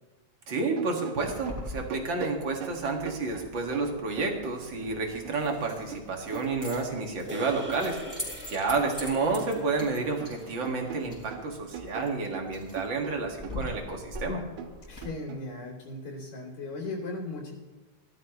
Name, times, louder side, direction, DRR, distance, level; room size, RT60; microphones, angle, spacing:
voice 1, 0.5-8.2 8.5-14.4, right 3 dB, 45° right, 2 dB, 2.5 m, -30 dB
sound 1, 0.8-4.9 5.2-8.2 8.5-9.3 9.5-15.4, right 8 dB, 85° right, 2.3 m, -42 dB
Keys jangling, 1.2-15.0, left 1 dB, 5° left, 4.7 m, -44 dB
sound 2, 7.3-11.8, equal, 10° right, 0.6 m, -44 dB
voice 2, 14.9-17.5, left 2 dB, 75° left, -4 dB, 4.3 m, -37 dB
18.5 x 13.0 x 3.1 m, 1.2 s
omnidirectional pair, 3.3 m